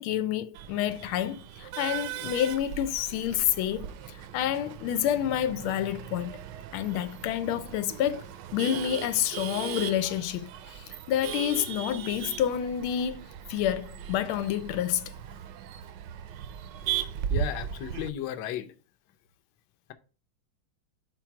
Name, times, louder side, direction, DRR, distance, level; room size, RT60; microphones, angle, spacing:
voice 1, 0.0-6.5 6.7-8.2 8.5-15.1, left 11 dB, 90° left, 1.4 m, -29 dB
Male speech man speaking / Laughter / Chatter, 0.5-18.1, right 9 dB, 75° right, 1.1 m, -38 dB
voice 2, 17.3-18.7, left 11 dB, 65° left, 1.2 m, -34 dB
4.6 x 4.5 x 5.8 m
omnidirectional pair, 2.3 m